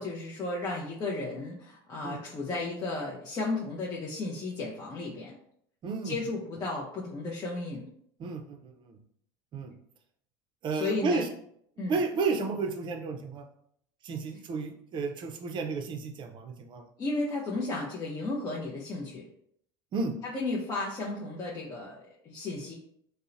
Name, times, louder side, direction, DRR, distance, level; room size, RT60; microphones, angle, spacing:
voice 1, 0.0-5.3 6.0-7.9 10.7-11.2 11.8-12.0 17.0-19.3 20.3-22.7, left 2 dB, 30° left, -4 dB, 0.5 m, -34 dB
voice 2, 5.8-6.1 8.2-8.9 9.5-9.7 10.6-11.3 11.9-13.4 14.0-16.9 19.9-20.1, right 4 dB, 40° right, 5 dB, 0.4 m, -32 dB
2.7 x 2.0 x 2.5 m, 0.69 s
supercardioid pair, 95°, 12 cm